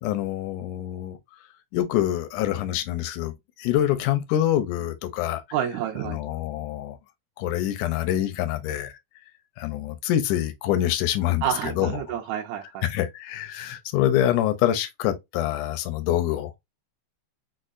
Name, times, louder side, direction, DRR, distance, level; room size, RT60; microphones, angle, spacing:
voice 1, 0.0-1.2 1.7-5.4 6.0-7.0 7.4-8.9 9.6-12.0 12.8-16.5, left 12 dB, 85° left, 2.1 m, -25 dB
voice 2, 5.5-6.2 11.4-12.8, right 10 dB, 75° right, 1.8 m, -29 dB
5.2 x 2.1 x 2.4 m
omnidirectional pair, 3.5 m